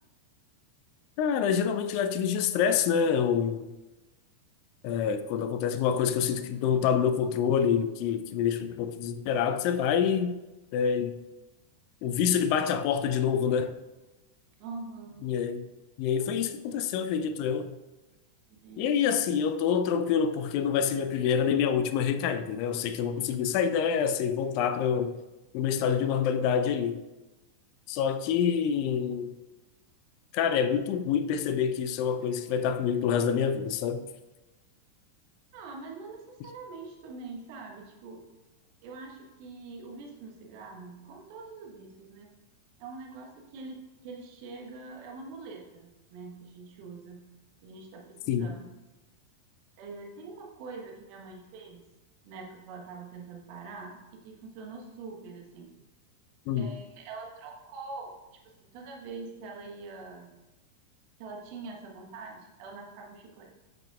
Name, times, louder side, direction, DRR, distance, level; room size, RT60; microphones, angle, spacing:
voice 1, 1.2-3.7 4.8-10.4 10.7-11.2 12.0-13.8 15.2-15.7 16.0-17.8 18.8-25.2 25.5-27.0 27.9-29.3 30.3-34.0 48.3-48.5 56.5-56.7, left 7 dB, 45° left, 0.5 m, -27 dB
voice 2, 14.6-15.3 18.5-18.9 35.5-38.2 38.8-42.3 42.8-47.3 47.6-48.7 49.8-51.8 52.2-55.7 56.6-60.4 61.2-63.6, right 4 dB, 45° right, 1.4 m, -44 dB
10.5 x 5.8 x 2.5 m
figure-of-eight pair, 90°, 0 cm